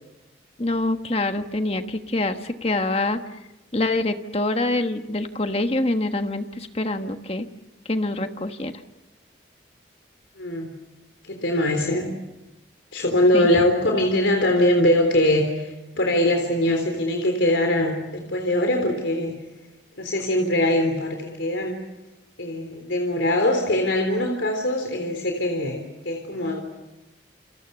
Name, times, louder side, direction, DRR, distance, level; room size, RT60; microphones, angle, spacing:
voice 1, 0.6-3.2 3.7-7.5 7.8-8.7 13.3-13.6, left 2 dB, 30° left, 7 dB, 1.4 m, -25 dB
voice 2, 10.4-10.7 11.2-12.1 12.9-19.3 20.0-21.8 22.4-25.8 26.0-26.6, left 1 dB, 80° left, 3 dB, 3.7 m, -22 dB
29.0 x 27.0 x 7.0 m, 1.0 s
head